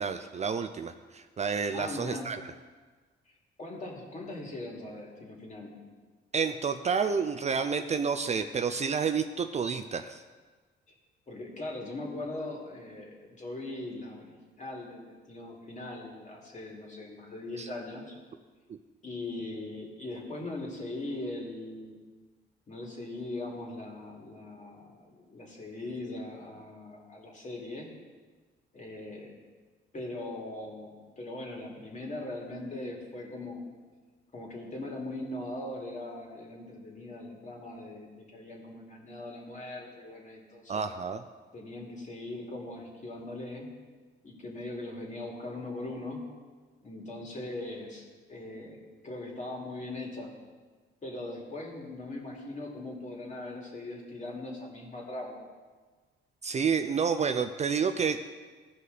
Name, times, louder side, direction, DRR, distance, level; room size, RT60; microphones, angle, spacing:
voice 1, 0.0-2.4 6.3-10.2 17.6-17.7 18.7-18.8 40.7-41.2 56.4-58.3, right 6 dB, 35° right, 8 dB, 0.4 m, -29 dB
voice 2, 1.7-2.3 3.6-5.7 11.3-18.1 19.0-22.0 22.7-27.9 28.7-29.3 29.9-33.6 34.3-40.8 41.5-43.7 44.2-46.2 46.8-48.0 48.3-50.3 51.0-55.4, left 2 dB, 40° left, -2 dB, 2.6 m, -40 dB
15.5 x 5.3 x 4.1 m, 1.4 s
cardioid pair, 90°, 20 cm